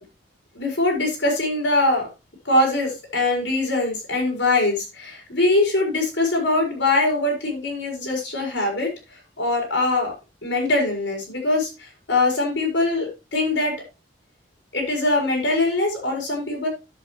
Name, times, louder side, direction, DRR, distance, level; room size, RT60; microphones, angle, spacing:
voice 1, 0.5-2.1 2.4-10.1 10.4-13.8 14.7-16.7, left 2 dB, 80° left, 1 dB, 4.6 m, -22 dB
10.5 x 7.6 x 3.2 m, 0.27 s
head